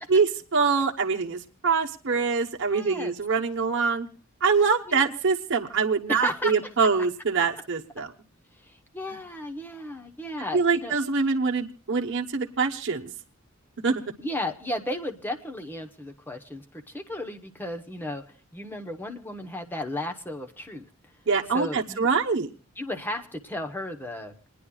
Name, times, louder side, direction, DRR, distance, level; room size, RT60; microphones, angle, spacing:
voice 1, 0.1-4.1 4.4-8.1 9.1-9.2 10.5-13.1 13.8-14.0 21.3-22.5, right 5 dB, 60° right, 2 dB, 1.0 m, -24 dB
voice 2, 2.7-3.1 4.9-5.2 6.1-6.6 8.6-11.0 14.2-18.2 18.5-20.8 21.5-22.1 22.8-24.3, left 1 dB, 10° left, 4 dB, 0.9 m, -34 dB
29.0 x 10.0 x 2.3 m, 0.40 s
head